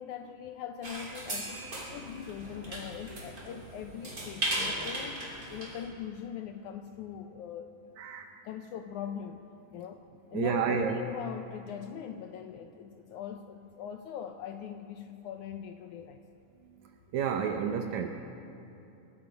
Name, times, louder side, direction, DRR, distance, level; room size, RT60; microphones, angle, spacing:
voice 1, 0.0-7.7 8.4-10.0 10.3-16.2, left 8 dB, 80° left, 7 dB, 1.8 m, -41 dB
sound 1, 0.8-5.8, right 1 dB, 25° right, 3.4 m, -37 dB
voice 2, 8.0-8.3 10.3-11.0 17.1-18.1, right 7 dB, 75° right, 5 dB, 1.8 m, -30 dB
23.5 x 11.5 x 5.1 m, 2.8 s
omnidirectional pair, 4.0 m